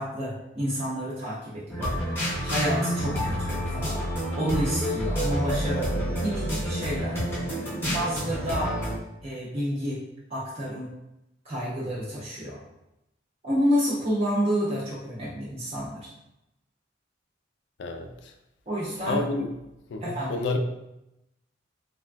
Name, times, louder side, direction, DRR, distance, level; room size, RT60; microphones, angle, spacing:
voice 1, 0.0-4.0 4.4-7.2 7.9-8.8 9.2-10.0 10.3-10.9 11.4-12.6 13.4-16.1 18.7-19.2 20.0-20.3, equal, 30° right, -7 dB, 0.5 m, -29 dB
sound 1, 1.7-8.9, equal, 10° left, 0.7 m, -29 dB
voice 2, 17.8-18.3 19.1-19.5 19.9-20.6, left 3 dB, 70° left, 5 dB, 0.3 m, -30 dB
3.2 x 2.3 x 2.2 m, 0.89 s
head